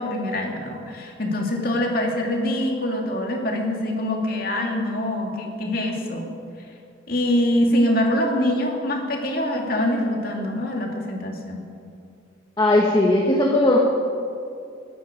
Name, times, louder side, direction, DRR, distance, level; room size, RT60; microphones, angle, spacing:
voice 1, 0.0-6.3 7.1-11.7, left 1 dB, 50° left, 1 dB, 2.5 m, -24 dB
voice 2, 12.6-13.8, left 1 dB, 20° left, -1 dB, 1.4 m, -18 dB
22.5 x 11.5 x 5.2 m, 2.4 s
head